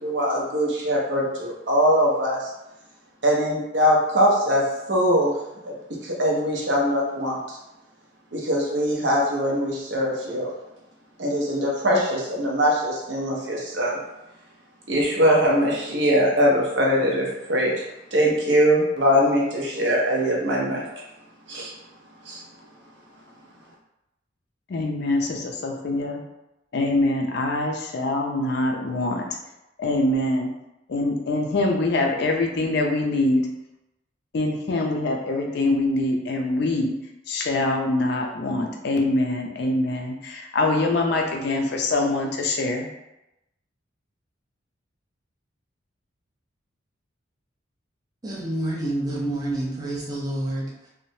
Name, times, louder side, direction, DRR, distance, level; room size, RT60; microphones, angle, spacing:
voice 1, 0.0-2.5 3.2-5.3 5.6-5.7 6.0-7.6 8.3-10.5 11.2-14.0 14.9-17.7 18.1-20.8 21.5-21.7 22.3-22.4, equal, 60° right, -2 dB, 0.7 m, -22 dB
voice 2, 24.7-26.2 26.7-29.2 29.8-30.5 30.9-33.4 34.3-36.9 37.3-42.9, left 2 dB, 55° left, 1 dB, 0.4 m, -24 dB
voice 3, 48.2-50.9, right 1 dB, 20° right, -4 dB, 0.5 m, -28 dB
3.1 x 2.0 x 2.6 m, 0.90 s
head